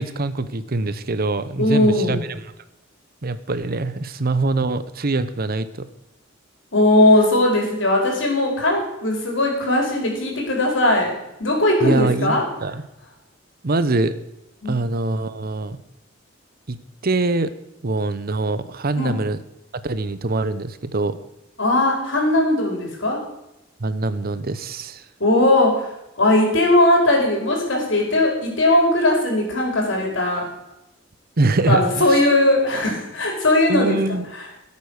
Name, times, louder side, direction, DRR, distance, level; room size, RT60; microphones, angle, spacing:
voice 1, 0.0-2.3 3.2-5.7 11.8-12.8 13.6-14.1 14.7-15.8 16.7-16.8 17.0-17.5 17.8-19.4 19.8-21.2 23.8-25.1 31.4-32.3 33.7-34.3, right 2 dB, 50° right, 13 dB, 0.8 m, -23 dB
voice 2, 1.6-2.2 6.7-11.1 11.4-12.4 14.6-14.8 18.9-19.1 21.6-23.2 25.2-25.9 26.2-30.5 31.7-34.0, left 1 dB, 70° left, 0 dB, 4.6 m, -18 dB
16.5 x 8.5 x 6.5 m, 0.88 s
head